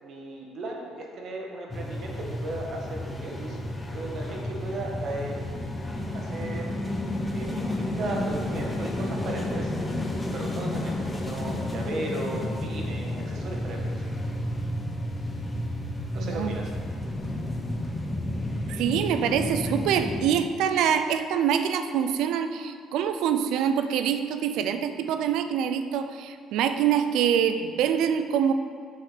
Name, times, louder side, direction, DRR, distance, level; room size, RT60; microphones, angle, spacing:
voice 1, 0.0-3.6 3.9-5.4 6.1-6.7 7.3-9.7 10.3-14.0 16.1-16.7, right 2 dB, 60° right, 0 dB, 1.6 m, -36 dB
sound 1, 1.7-20.3, left 1 dB, 15° left, 1.1 m, -31 dB
voice 2, 16.2-16.6 18.7-28.5, right 8 dB, 75° right, 9 dB, 0.4 m, -25 dB
7.3 x 7.3 x 4.0 m, 2.1 s
supercardioid pair, 80°, 0 cm